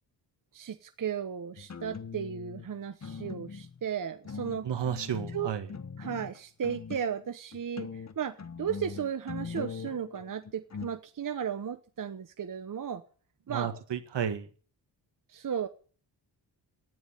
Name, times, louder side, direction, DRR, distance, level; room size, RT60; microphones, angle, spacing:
voice 1, 0.5-4.7 5.3-5.5 6.0-13.0 13.5-13.8 15.3-15.7, right 8 dB, 45° right, 1.0 m, -35 dB
sound 1, 1.6-2.7 3.0-3.9 4.3-7.3 7.5-10.9, left 6 dB, 35° left, 1.3 m, -41 dB
voice 2, 4.6-5.7 13.5-14.5, right 8 dB, 70° right, 1.9 m, -32 dB
12.0 x 9.7 x 9.7 m
wide cardioid pair, 105°, 44 cm